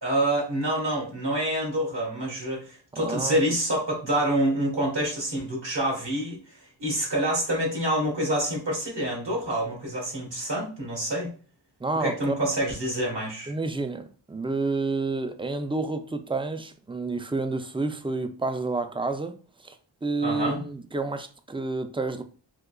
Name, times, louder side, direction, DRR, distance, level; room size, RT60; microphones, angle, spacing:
voice 1, 0.0-6.4 6.8-11.3 12.0-13.5 20.2-20.6, right 1 dB, 65° right, 1.5 m, -27 dB
voice 2, 2.9-3.4 11.8-12.3 13.5-19.8 20.0-22.2, right 3 dB, 15° right, 0.3 m, -29 dB
3.7 x 2.8 x 2.3 m
wide cardioid pair, 50°, 46 cm